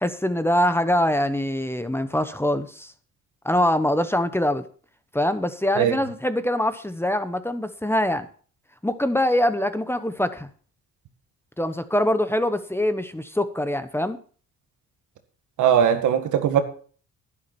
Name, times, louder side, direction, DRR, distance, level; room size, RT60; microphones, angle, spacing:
voice 1, 0.0-2.9 3.4-4.6 5.1-8.3 8.8-10.5 11.6-14.2, left 1 dB, 10° left, 1.0 m, -23 dB
voice 2, 15.6-16.6, right 9 dB, 80° right, 1.8 m, -19 dB
11.0 x 11.0 x 4.4 m
cardioid pair, 90°, 30 cm